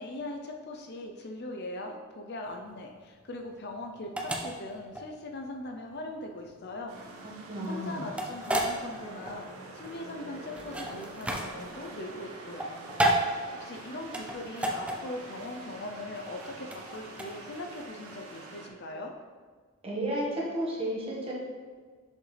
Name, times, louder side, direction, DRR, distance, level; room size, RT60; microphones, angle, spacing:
voice 1, 0.0-7.0 7.7-12.7 13.5-19.1, left 2 dB, 50° left, 3 dB, 0.5 m, -40 dB
sound 1, 2.5-17.9, right 1 dB, 5° right, 0.4 m, -33 dB
sound 2, 6.9-18.7, right 2 dB, 85° right, 0.9 m, -46 dB
voice 2, 7.5-8.1 19.8-21.3, right 1 dB, 25° right, -5 dB, 1.4 m, -32 dB
6.3 x 5.2 x 3.3 m, 1.5 s
head